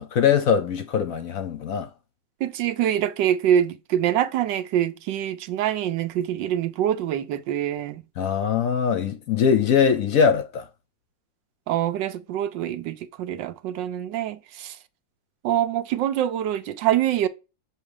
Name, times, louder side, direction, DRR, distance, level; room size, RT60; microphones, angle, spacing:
voice 1, 0.0-1.9 8.2-10.6, left 7 dB, 60° left, 1.0 m, -22 dB
voice 2, 2.4-8.0 11.7-14.8 15.4-17.3, right 11 dB, 85° right, 1.4 m, -25 dB
6.5 x 3.2 x 4.7 m
omnidirectional pair, 1.9 m